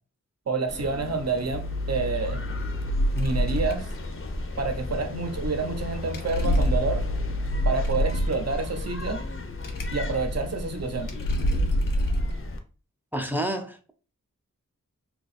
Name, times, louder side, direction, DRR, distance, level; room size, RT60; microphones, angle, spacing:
voice 1, 0.5-2.4 3.1-3.9 4.6-7.0 7.6-9.2 9.9-11.2, right 4 dB, 50° right, 0.7 m, -28 dB
sound 1, 0.7-12.6, left 2 dB, 40° left, 0.6 m, -36 dB
sound 2, 1.5-12.3, equal, 85° left, 0.6 m, -28 dB
voice 2, 13.1-13.9, equal, 5° right, 0.5 m, -29 dB
2.7 x 2.3 x 4.1 m
wide cardioid pair, 65°, 32 cm